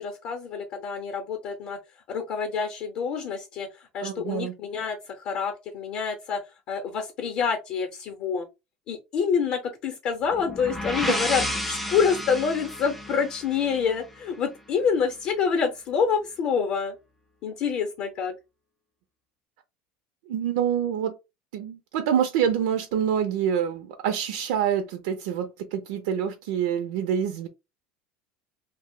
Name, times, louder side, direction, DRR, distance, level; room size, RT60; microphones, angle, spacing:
voice 1, 0.0-1.8 2.1-6.4 6.7-8.5 8.9-17.0 17.4-18.3, left 6 dB, 45° left, 0.6 m, -27 dB
voice 2, 4.0-4.5 11.1-11.2 20.3-21.2 21.5-27.5, right 8 dB, 80° right, 0.4 m, -26 dB
sound 1, 10.3-14.1, left 1 dB, ahead, 0.4 m, -32 dB
2.7 x 2.0 x 3.5 m
cardioid pair, 160°, 4 cm